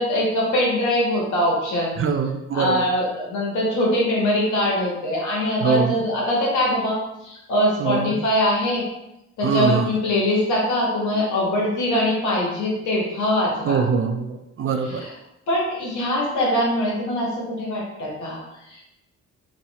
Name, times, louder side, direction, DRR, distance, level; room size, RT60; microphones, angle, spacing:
voice 1, 0.0-1.9 2.5-7.0 7.2-8.8 9.4-13.8 14.8-15.1 15.5-18.9, left 1 dB, 80° left, -4 dB, 1.5 m, -22 dB
voice 2, 2.0-2.8 5.6-6.0 7.8-8.2 9.4-9.9 13.7-15.0, right 5 dB, 45° right, 6 dB, 0.4 m, -23 dB
2.9 x 2.8 x 4.0 m, 0.90 s
cardioid pair, 90°, 30 cm